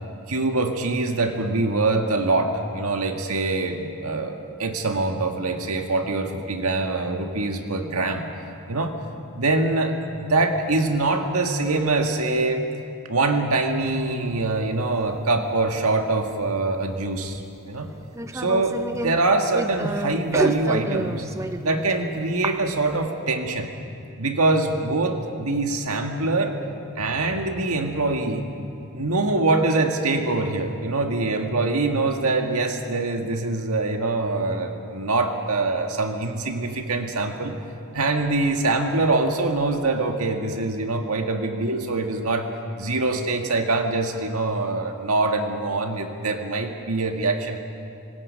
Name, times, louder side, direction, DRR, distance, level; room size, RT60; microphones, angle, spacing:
voice 1, 0.3-8.2 8.7-8.9 9.3-12.6 13.1-17.4 17.7-17.9 18.3-21.2 21.6-23.7 24.2-26.6 27.0-28.5 28.9-37.6 37.9-42.5 42.8-47.6, right 2 dB, 90° right, 4 dB, 1.8 m, -24 dB
sound 1, 13.8-15.4 16.2-16.3 17.3-17.4 18.0-21.9 22.4-23.0, right 1 dB, 15° right, 0.5 m, -30 dB
25.5 x 19.5 x 5.4 m, 2.6 s
head